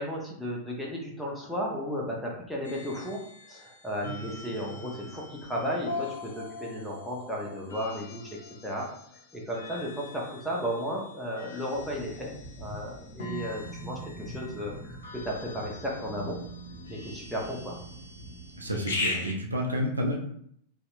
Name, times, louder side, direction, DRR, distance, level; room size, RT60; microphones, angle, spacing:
voice 1, 0.0-8.4 8.6-8.9 9.3-16.4 16.9-17.8, equal, 5° left, -3 dB, 0.7 m, -34 dB
sound 1, 2.6-19.3, left 2 dB, 70° left, 0.5 m, -41 dB
sound 2, 11.7-18.8, equal, 40° left, 1.0 m, -46 dB
voice 2, 18.6-20.2, equal, 80° right, 1 dB, 0.4 m, -30 dB
2.7 x 2.1 x 2.4 m, 0.67 s
figure-of-eight pair, 90°, 0 cm